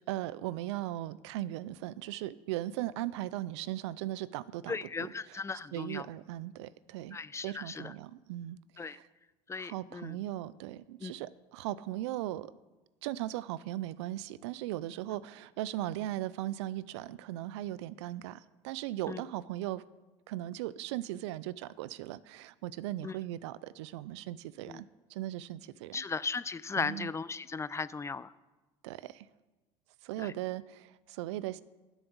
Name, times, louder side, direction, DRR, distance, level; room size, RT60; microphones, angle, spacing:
voice 1, 0.1-4.9 5.3-5.4 5.7-7.2 7.4-9.1 9.6-12.5 13.0-19.8 20.3-26.0 26.8-27.1 28.8-29.3 30.0-31.6, right 14 dB, 85° right, 18 dB, 0.4 m, -38 dB
voice 2, 4.7-6.1 7.1-7.9 8.8-9.0 9.5-10.2 11.0-11.1 19.1-19.2 23.0-23.1 24.7-24.8 25.9-28.3 30.2-30.3, left 4 dB, 20° left, 18 dB, 0.4 m, -37 dB
10.5 x 7.2 x 7.1 m, 1.1 s
hypercardioid pair, 75°, 14 cm